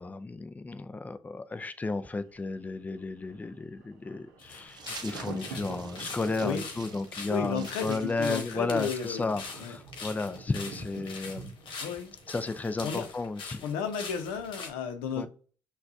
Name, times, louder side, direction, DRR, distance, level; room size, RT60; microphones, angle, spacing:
voice 1, 0.0-11.5 12.3-13.6 15.2-15.3, left 3 dB, 15° left, 0.4 m, -33 dB
Thunder, 2.2-13.1 13.4-13.5, right 4 dB, 90° right, 0.7 m, -47 dB
sound 1, 4.4-14.7, left 4 dB, 65° left, 1.1 m, -43 dB
sound 2, 4.7-9.1, right 6 dB, 50° right, 0.7 m, -48 dB
voice 2, 7.3-9.3 9.6-9.8 11.8-12.1 12.8-13.1 13.6-15.3, left 6 dB, 85° left, 0.6 m, -33 dB
5.9 x 2.3 x 2.7 m
hypercardioid pair, 60°, 9 cm